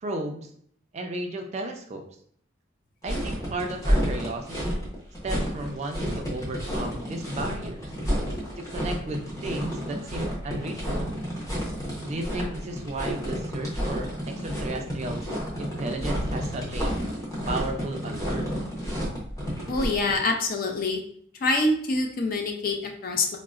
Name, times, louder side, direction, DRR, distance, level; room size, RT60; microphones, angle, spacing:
voice 1, 0.0-0.5 0.9-2.0 3.0-4.8 5.2-7.8 8.6-11.1 12.0-15.2 15.6-16.9 17.5-18.5, right 2 dB, 35° right, 4 dB, 0.3 m, -34 dB
sound 1, 3.0-20.1, equal, 15° left, 0.7 m, -30 dB
voice 2, 19.7-21.0 21.3-23.4, left 2 dB, 45° left, 3 dB, 0.4 m, -25 dB
3.6 x 2.0 x 2.3 m, 0.63 s
head